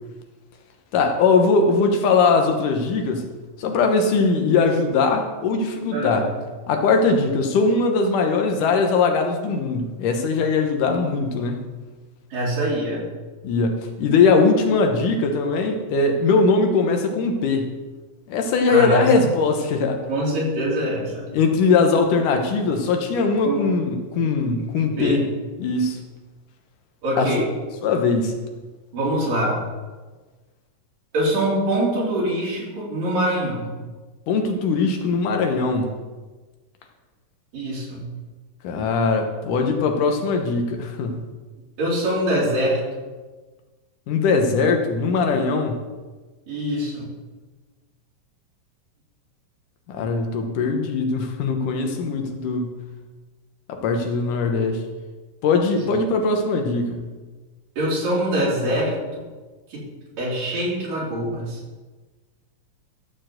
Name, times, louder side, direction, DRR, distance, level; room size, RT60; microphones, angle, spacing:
voice 1, 0.9-3.3 3.6-6.2 6.7-11.7 13.4-17.7 18.3-20.0 21.3-25.2 25.6-26.0 27.2-27.3 27.8-28.3 34.3-35.9 38.6-41.2 44.1-45.8 49.9-52.8 53.7-54.8 55.4-57.1, left 4 dB, 75° left, 4 dB, 2.6 m, -20 dB
voice 2, 5.9-6.3 12.3-13.0 18.7-19.3 20.1-21.3 23.4-23.6 24.8-25.2 27.0-27.5 28.9-29.6 31.1-33.7 37.5-38.0 41.8-42.8 46.5-47.1 57.8-59.0 59.7-59.8 60.2-61.6, right 1 dB, 80° right, -6 dB, 5.4 m, -24 dB
14.0 x 4.7 x 7.7 m, 1.3 s
omnidirectional pair, 3.8 m